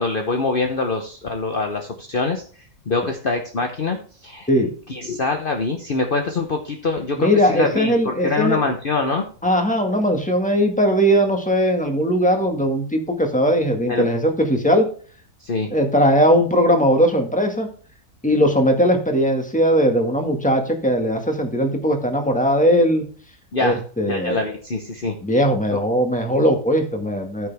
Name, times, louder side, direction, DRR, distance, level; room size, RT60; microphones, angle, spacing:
voice 1, 0.0-2.4 2.9-4.5 4.9-9.2 13.9-14.1 15.4-15.7 23.5-23.8 24.1-25.1, left 3 dB, 45° left, 4 dB, 1.1 m, -24 dB
voice 2, 7.2-8.6 9.4-14.9 15.7-17.7 18.2-23.1 23.6-24.4 25.2-27.5, equal, 5° left, 3 dB, 1.8 m, -19 dB
13.5 x 6.7 x 3.5 m, 0.42 s
omnidirectional pair, 1.4 m